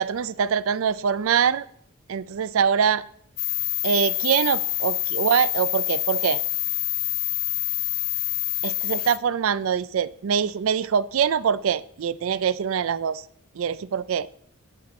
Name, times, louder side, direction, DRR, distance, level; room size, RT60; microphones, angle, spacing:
voice 1, 0.0-1.6 2.1-3.0 3.8-6.4 8.6-13.2 13.6-14.3, right 7 dB, 75° right, 0.4 m, -24 dB
sound 1, 3.4-9.2, left 17 dB, 45° left, 0.5 m, -26 dB
19.5 x 7.6 x 4.2 m
head